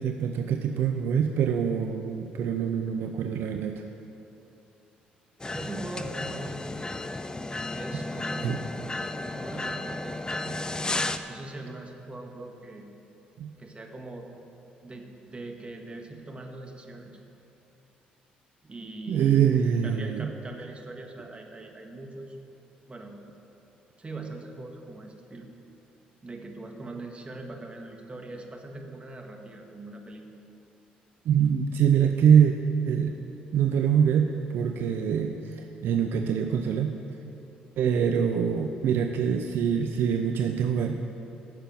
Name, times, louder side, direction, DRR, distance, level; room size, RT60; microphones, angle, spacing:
voice 1, 0.0-3.8 8.4-8.6 13.4-13.5 19.1-20.3 31.3-32.5 32.9-33.1 33.5-36.9 37.8-41.0, right 8 dB, 65° right, 5 dB, 0.5 m, -24 dB
sound 1, 5.4-11.2, left 2 dB, 20° left, 0.6 m, -33 dB
voice 2, 5.4-6.6 7.7-8.7 9.2-10.7 11.3-12.9 13.6-14.3 14.8-17.2 18.6-19.4 19.8-22.4 22.9-23.2 24.0-25.5 26.2-30.3, right 2 dB, 25° right, 3 dB, 1.6 m, -41 dB
10.5 x 6.7 x 7.8 m, 2.8 s
hypercardioid pair, 50°, 4 cm